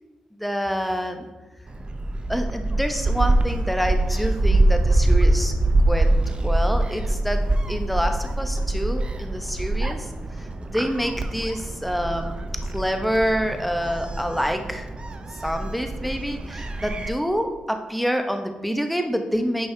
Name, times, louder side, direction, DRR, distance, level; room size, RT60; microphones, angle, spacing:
voice 1, 0.4-1.3 2.3-5.5 5.9-10.1 10.4-12.4 12.7-14.9 15.4-19.7, equal, ahead, 5 dB, 0.9 m, -27 dB
Gull seagull, 1.7-17.1, right 2 dB, 40° right, 0.7 m, -24 dB
8.7 x 5.5 x 2.8 m, 1.2 s
supercardioid pair, 50°, 3 cm